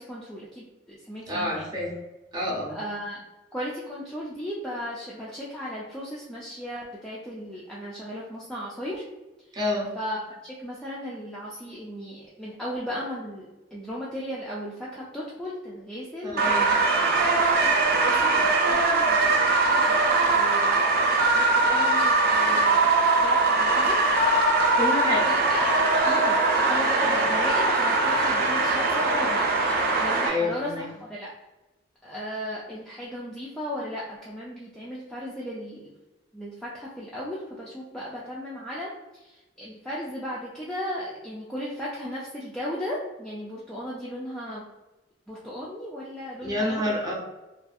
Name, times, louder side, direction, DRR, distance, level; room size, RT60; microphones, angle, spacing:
voice 1, 0.0-1.7 2.7-3.2 3.5-9.0 10.0-17.0 17.4-23.0 23.2-24.0 25.3-25.7 26.0-26.4 26.7-29.4 30.0-31.3 32.0-35.9 36.3-44.6 45.3-46.8, equal, 5° left, -7 dB, 0.3 m, -36 dB
voice 2, 1.3-1.9 2.3-2.7 9.6-9.9 16.2-16.7 24.7-25.3 30.2-30.9 46.4-47.1, left 1 dB, 20° right, -4 dB, 0.7 m, -28 dB
sound 1, 16.4-30.3, right 3 dB, 55° right, 0.5 m, -21 dB
2.5 x 2.3 x 2.5 m, 1.0 s
head